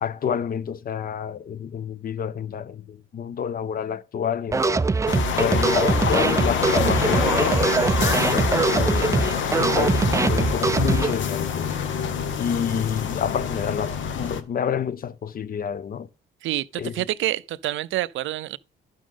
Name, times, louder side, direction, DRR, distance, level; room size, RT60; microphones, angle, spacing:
voice 1, 0.0-4.8 5.4-7.9 8.3-9.3 9.6-11.7 12.4-16.1 16.8-16.9, left 7 dB, 45° left, 0.7 m, -28 dB
sound 1, 4.5-11.1, right 4 dB, 15° right, 0.3 m, -22 dB
sound 2, 5.1-14.4, left 7 dB, 75° left, 1.2 m, -26 dB
voice 2, 16.4-18.6, right 15 dB, 75° right, 0.5 m, -27 dB
11.0 x 6.3 x 3.7 m
cardioid pair, 90°, 20 cm